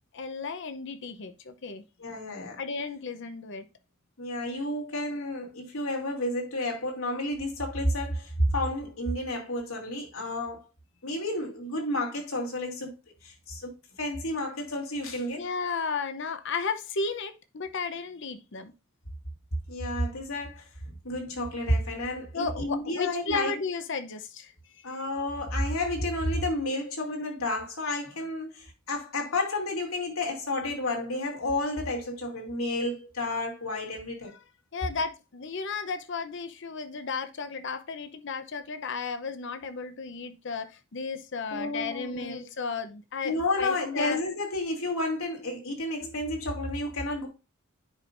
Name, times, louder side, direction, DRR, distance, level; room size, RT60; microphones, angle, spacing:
voice 1, 0.1-1.8 2.6-3.6 15.3-18.7 22.3-24.8 34.7-44.2, left 4 dB, 60° left, 0.7 m, -34 dB
voice 2, 2.0-2.6 4.2-10.7 11.0-13.0 13.2-15.5 19.7-20.7 21.0-23.5 24.8-34.3 41.5-42.4 43.2-47.3, left 1 dB, 80° left, 2.7 m, -31 dB
9.7 x 5.3 x 2.5 m
head